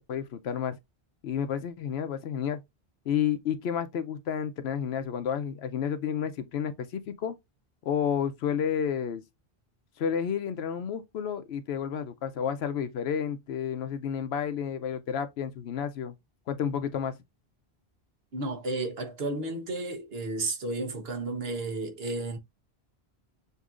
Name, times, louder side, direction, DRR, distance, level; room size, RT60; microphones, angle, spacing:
voice 1, 0.1-0.8 1.2-2.6 3.1-7.4 7.8-9.2 10.0-16.1 16.5-17.2, left 8 dB, 80° left, 0.9 m, -31 dB
voice 2, 18.3-22.4, right 2 dB, 70° right, 1.2 m, -32 dB
6.7 x 2.7 x 2.4 m
omnidirectional pair, 1.1 m